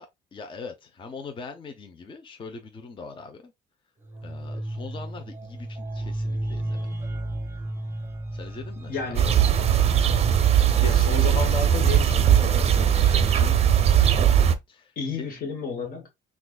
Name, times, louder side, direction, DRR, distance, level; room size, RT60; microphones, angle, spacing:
voice 1, 0.0-3.5 4.2-6.8 8.3-9.6 14.4-15.3, left 4 dB, 30° left, 0.6 m, -42 dB
sound 1, 4.0-12.3, right 1 dB, 15° right, 1.1 m, -34 dB
voice 2, 8.9-9.4 10.8-13.7 15.0-16.1, left 5 dB, 60° left, 1.1 m, -33 dB
sound 2, 9.1-14.5, right 9 dB, 40° right, 0.6 m, -19 dB
6.0 x 2.4 x 2.3 m
cardioid pair, 110°, 17 cm